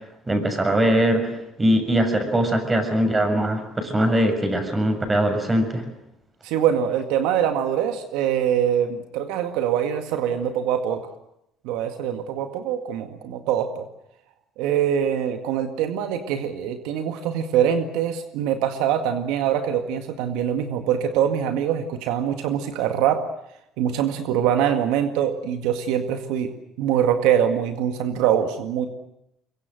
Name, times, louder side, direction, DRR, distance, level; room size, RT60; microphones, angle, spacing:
voice 1, 0.3-5.8, right 1 dB, 20° right, 6 dB, 7.0 m, -21 dB
voice 2, 6.4-11.1 11.6-13.9 14.6-23.2 23.8-26.5 26.8-28.9, right 9 dB, 85° right, 8 dB, 2.0 m, -23 dB
23.5 x 23.0 x 7.8 m, 0.82 s
cardioid pair, 95°, 0 cm